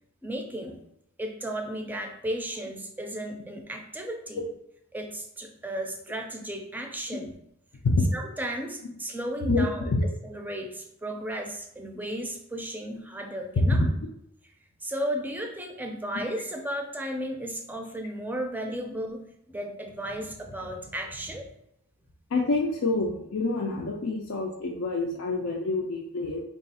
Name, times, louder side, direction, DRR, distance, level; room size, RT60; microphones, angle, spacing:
voice 1, 0.2-0.8 1.2-4.4 4.9-7.4 8.1-9.9 10.2-13.9 14.8-21.5, right 1 dB, 10° right, 3 dB, 0.4 m, -34 dB
voice 2, 9.4-10.1 13.7-13.8 22.3-26.4, left 3 dB, 85° left, -2 dB, 0.5 m, -27 dB
3.4 x 2.3 x 4.1 m, 0.77 s
head